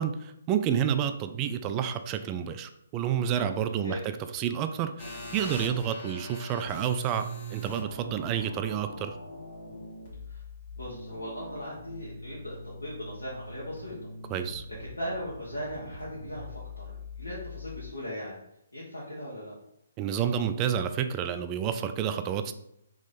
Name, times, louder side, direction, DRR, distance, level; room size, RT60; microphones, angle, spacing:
voice 1, 0.0-9.1 14.3-14.6 20.0-22.5, right 8 dB, 25° right, 8 dB, 0.3 m, -29 dB
sound 1, 5.0-17.9, left 1 dB, 45° left, 1.6 m, -42 dB
voice 2, 10.7-13.9 14.8-18.4 18.7-19.5, equal, 90° left, -6 dB, 1.2 m, -38 dB
3.6 x 3.0 x 4.1 m, 0.78 s
figure-of-eight pair, 135°, 0 cm